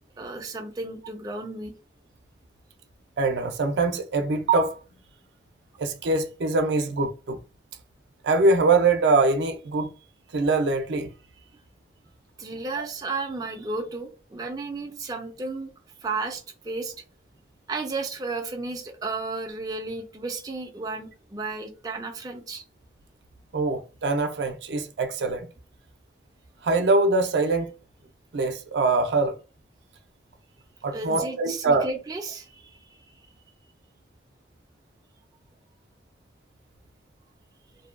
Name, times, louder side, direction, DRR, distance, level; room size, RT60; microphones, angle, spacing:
voice 1, 0.2-1.7 12.4-15.7 16.0-16.9 17.7-22.6 30.9-33.0, right 3 dB, 20° right, 0.3 m, -33 dB
voice 2, 3.2-4.8 5.8-7.4 8.2-9.9 10.3-11.1 12.8-12.9 23.5-25.5 26.6-27.7 28.3-29.4 30.8-31.9, right 3 dB, 80° right, 0.4 m, -23 dB
2.6 x 2.2 x 2.4 m
head